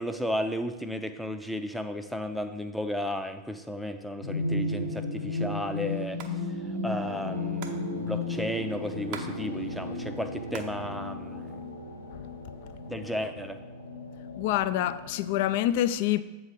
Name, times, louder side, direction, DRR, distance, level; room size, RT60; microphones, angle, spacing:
voice 1, 0.0-6.2 6.8-11.6 12.9-13.6, equal, ahead, 0.5 m, -34 dB
sound 1, 4.2-10.6, left 2 dB, 80° right, 1.1 m, -33 dB
Hands, 6.2-6.4 6.6-6.7 6.9-9.3 9.6-10.8 11.2-11.9 12.5-13.1, right 7 dB, 45° right, 0.7 m, -43 dB
sound 2, 6.8-15.4, left 2 dB, 85° left, 1.4 m, -41 dB
voice 2, 14.4-16.2, left 13 dB, 50° left, 0.3 m, -26 dB
7.9 x 3.9 x 5.9 m
figure-of-eight pair, 90°, 0 cm